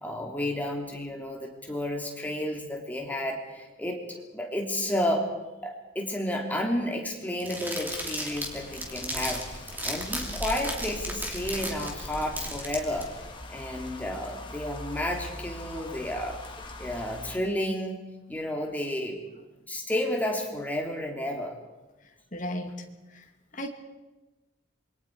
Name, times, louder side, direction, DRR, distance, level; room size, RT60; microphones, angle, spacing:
voice 1, 0.0-4.0 4.3-5.3 5.6-13.1 13.5-16.4 16.8-18.0 18.3-19.2 19.7-21.6, left 1 dB, 10° left, 0 dB, 2.9 m, -31 dB
sound 1, 7.4-13.0, right 1 dB, 10° right, 3.1 m, -35 dB
sound 2, 7.7-17.4, left 1 dB, 25° left, 2.1 m, -41 dB
voice 2, 22.3-22.7 23.5-23.7, equal, 40° left, 4 dB, 2.3 m, -33 dB
27.0 x 23.5 x 4.7 m, 1.1 s
head